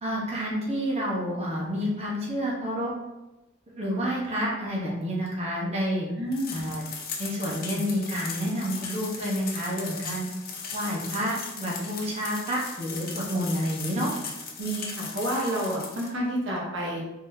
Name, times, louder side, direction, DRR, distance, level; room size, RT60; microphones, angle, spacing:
voice 1, 0.0-2.9 3.8-6.1 6.5-6.8 7.2-10.3 10.7-14.1, equal, 35° right, -5 dB, 1.0 m, -29 dB
voice 2, 6.2-6.6 14.6-17.0, right 1 dB, 70° right, -3 dB, 1.0 m, -29 dB
sound 1, 6.3-16.1, left 5 dB, 50° left, 0.7 m, -38 dB
4.0 x 3.8 x 2.7 m, 0.99 s
head